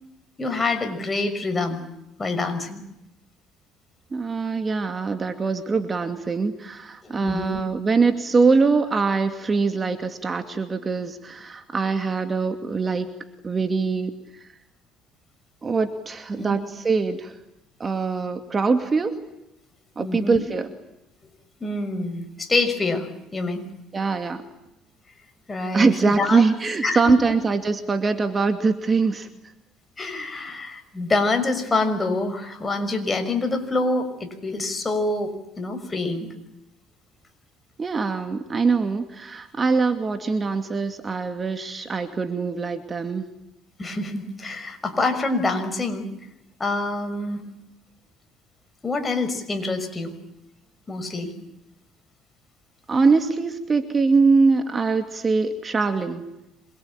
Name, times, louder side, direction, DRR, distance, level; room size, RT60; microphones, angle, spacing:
voice 1, 0.4-1.8 2.2-2.8 7.0-7.6 16.4-16.6 20.0-20.4 21.6-23.1 23.3-23.6 25.5-26.4 26.8-27.3 30.0-36.3 43.8-46.1 46.6-47.5 48.8-50.1 50.9-51.3, left 2 dB, 20° left, 7 dB, 6.0 m, -26 dB
voice 2, 4.1-13.1 13.4-14.1 14.4-14.5 15.6-17.4 17.8-19.2 20.0-20.7 23.9-24.4 25.7-29.3 37.8-43.2 52.9-56.2, right 4 dB, 30° right, 7 dB, 2.4 m, -23 dB
27.0 x 23.0 x 8.9 m, 0.89 s
supercardioid pair, 95°, 0 cm